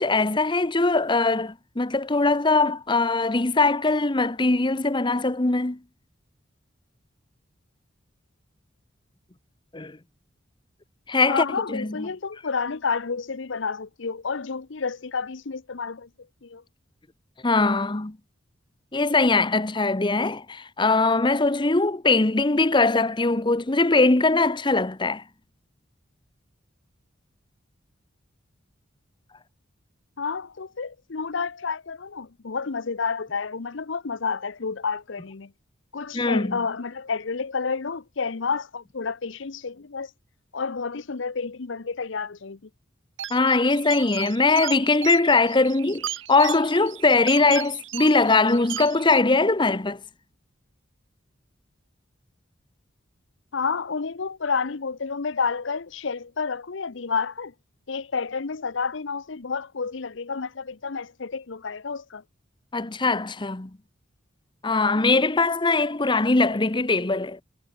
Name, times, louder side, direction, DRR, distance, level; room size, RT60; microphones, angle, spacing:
voice 1, 0.0-5.8 9.7-10.0 11.1-12.1 17.4-18.2 18.9-25.2 36.1-36.6 43.3-50.0 62.7-63.7 64.6-67.4, left 3 dB, 25° left, 0.9 m, -21 dB
voice 2, 11.3-16.1 16.4-16.6 30.2-35.5 35.9-40.1 40.5-42.6 53.5-57.5 57.9-62.2, left 5 dB, 65° left, 0.8 m, -30 dB
sound 1, 43.2-49.2, right 11 dB, 70° right, 1.3 m, -36 dB
head